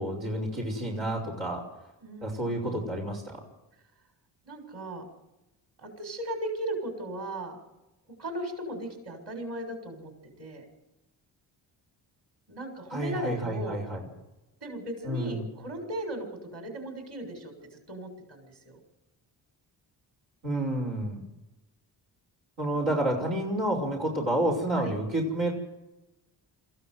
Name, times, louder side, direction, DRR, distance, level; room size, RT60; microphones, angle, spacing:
voice 1, 0.0-1.7 2.2-3.4 12.9-14.0 15.0-15.5 20.4-21.2 22.6-25.5, right 1 dB, 90° right, -5 dB, 5.3 m, -29 dB
voice 2, 2.0-2.7 4.5-5.1 5.8-7.6 8.2-10.1 10.4-10.6 12.5-13.8 14.6-17.5 17.9-18.8 24.8-24.9, right 1 dB, 55° right, 5 dB, 6.9 m, -37 dB
22.5 x 15.5 x 8.0 m, 0.99 s
supercardioid pair, 55°, 48 cm